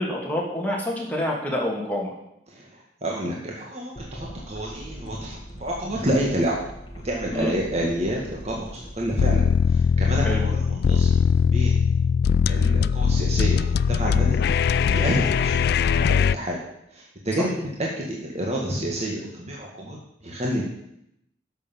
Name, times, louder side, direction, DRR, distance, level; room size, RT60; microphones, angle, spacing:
voice 1, 0.0-2.1 7.3-7.6 10.2-10.4, left 1 dB, 10° left, -3 dB, 2.7 m, -27 dB
voice 2, 2.5-6.6 7.0-11.1 11.4-11.8 12.5-16.6 16.9-17.7 18.0-20.6, right 1 dB, 40° right, -2 dB, 1.8 m, -29 dB
sound 1, 4.0-9.4, equal, 25° left, 1.9 m, -41 dB
sound 2, 9.2-16.4, left 6 dB, 60° left, 0.3 m, -20 dB
11.0 x 6.9 x 7.3 m, 0.79 s
head